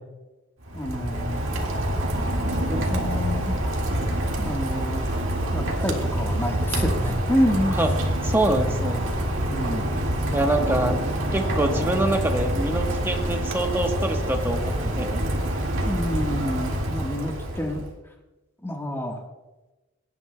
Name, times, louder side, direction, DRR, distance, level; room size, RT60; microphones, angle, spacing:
Rain, 0.6-17.9, right 1 dB, 85° right, 1.9 m, -26 dB
voice 1, 0.7-1.4 2.5-3.6 4.4-5.1 5.5-7.8 9.5-9.9 15.8-17.8 18.6-19.2, equal, 10° left, 1 dB, 1.4 m, -28 dB
voice 2, 8.2-9.0 10.3-11.0 11.3-15.3, right 1 dB, 10° right, 3 dB, 1.1 m, -25 dB
18.0 x 11.0 x 2.2 m, 1.1 s
head